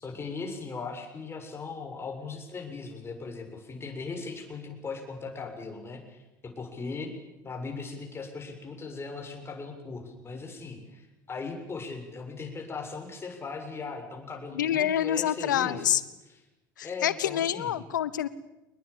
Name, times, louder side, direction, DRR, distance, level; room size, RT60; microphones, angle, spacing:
voice 1, 0.0-7.1 7.4-15.9 16.8-17.8, left 4 dB, 25° left, 3 dB, 7.4 m, -38 dB
voice 2, 14.5-16.0 16.8-18.3, left 11 dB, 75° left, 18 dB, 1.1 m, -27 dB
26.5 x 21.0 x 9.0 m, 0.98 s
figure-of-eight pair, 70°, 10 cm